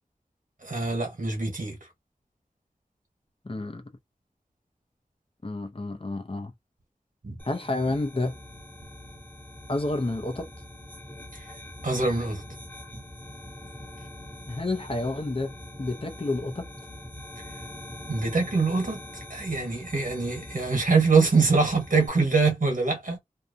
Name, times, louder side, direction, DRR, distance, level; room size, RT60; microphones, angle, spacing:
voice 1, 0.6-1.8 7.2-7.4 11.3-11.4 11.8-12.4 12.9-13.0 18.1-19.0 19.3-23.2, right 4 dB, 65° right, 1.3 m, -24 dB
voice 2, 3.4-3.8 5.4-6.5 7.5-8.3 9.7-10.5 14.5-15.5 15.8-16.6, left 2 dB, 40° left, 0.7 m, -29 dB
sound 1, 7.4-22.1, left 1 dB, 10° left, 0.9 m, -43 dB
2.7 x 2.2 x 2.6 m
wide cardioid pair, 50°, 15 cm